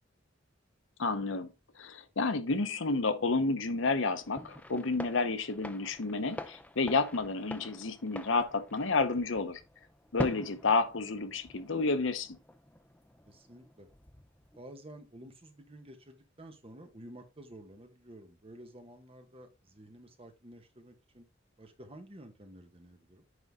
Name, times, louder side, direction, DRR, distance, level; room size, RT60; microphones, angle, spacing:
voice 1, 1.0-1.5 1.8-9.6 10.1-12.4, left 3 dB, 70° left, 0.9 m, -30 dB
sound 1, 4.0-14.6, left 1 dB, 5° left, 0.5 m, -45 dB
voice 2, 13.3-13.9 14.6-21.2 21.6-23.2, right 1 dB, 30° right, 1.2 m, -51 dB
9.5 x 3.9 x 3.7 m
head